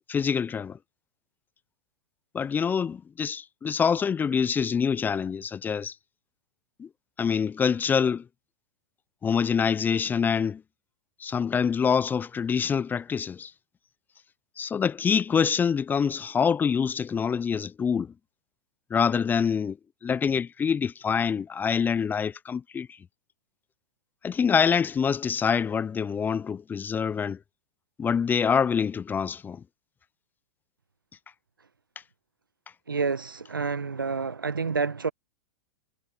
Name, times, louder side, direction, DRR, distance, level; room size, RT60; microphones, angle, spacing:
voice 1, 0.1-0.8 2.3-5.9 6.8-6.9 7.2-8.2 9.2-10.6 11.2-13.5 14.6-18.1 18.9-19.8 20.0-22.9 24.2-27.4 28.0-29.6, left 6 dB, 15° left, 0.5 m, -25 dB
voice 2, 32.9-35.1, right 4 dB, 90° right, 1.2 m, -28 dB
hypercardioid pair, 100°, 11 cm